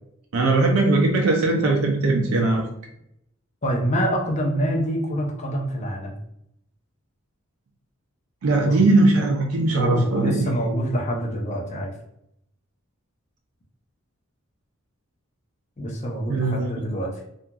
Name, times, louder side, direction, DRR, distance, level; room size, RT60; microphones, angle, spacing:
voice 1, 0.3-2.7 8.4-10.5 16.3-16.7, right 2 dB, 80° right, 1 dB, 0.4 m, -20 dB
voice 2, 3.6-6.2 8.6-8.8 9.7-11.9 15.8-17.1, equal, 35° left, -1 dB, 0.5 m, -26 dB
2.8 x 2.4 x 2.2 m, 0.76 s
head